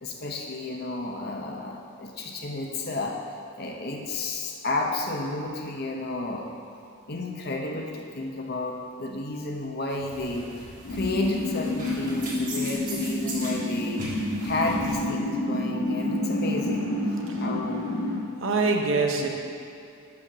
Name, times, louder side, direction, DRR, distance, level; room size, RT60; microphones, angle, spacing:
voice 1, 0.0-3.2 3.6-6.5 7.1-10.5 10.9-14.0 14.4-16.9 17.4-17.9 19.2-19.3, left 2 dB, 45° left, 1 dB, 0.7 m, -31 dB
sound 1, 9.9-15.0, right 2 dB, 40° right, 1.6 m, -39 dB
sound 2, 10.8-18.2, left 1 dB, 90° left, 1.4 m, -29 dB
voice 2, 18.4-19.3, right 3 dB, 65° right, 2 dB, 0.8 m, -24 dB
6.5 x 5.3 x 5.8 m, 2.5 s
head